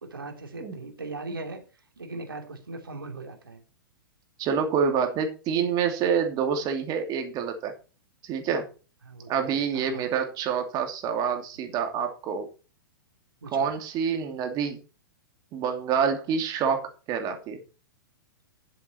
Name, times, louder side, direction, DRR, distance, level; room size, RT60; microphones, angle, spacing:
voice 1, 0.0-1.6 2.0-3.6 9.0-10.1 13.4-13.7, right 3 dB, 85° right, 4 dB, 2.8 m, -39 dB
voice 2, 4.4-7.7 8.2-8.7 9.3-12.5 13.5-14.8 15.5-17.6, right 7 dB, 35° right, 5 dB, 2.6 m, -27 dB
11.0 x 7.6 x 4.4 m, 0.35 s
hypercardioid pair, 110°, 11 cm